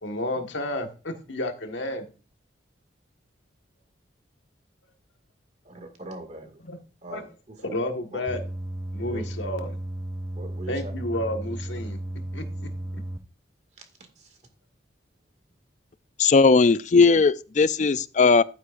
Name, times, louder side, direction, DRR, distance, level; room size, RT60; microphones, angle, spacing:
voice 1, 0.0-2.0 6.7-6.8 7.1-7.2 7.6-8.4 8.9-9.7 10.7-12.0 12.3-13.0, left 1 dB, 75° left, 1.6 m, -31 dB
voice 2, 5.6-6.6 7.0-7.8 8.1-8.2 9.1-9.2 10.3-10.9 14.2-14.4, right 1 dB, 35° right, 2.1 m, -40 dB
sound 1, 8.3-13.2, right 1 dB, 15° right, 0.6 m, -34 dB
voice 3, 16.2-18.4, left 4 dB, 40° left, 0.4 m, -18 dB
11.5 x 9.5 x 2.6 m
head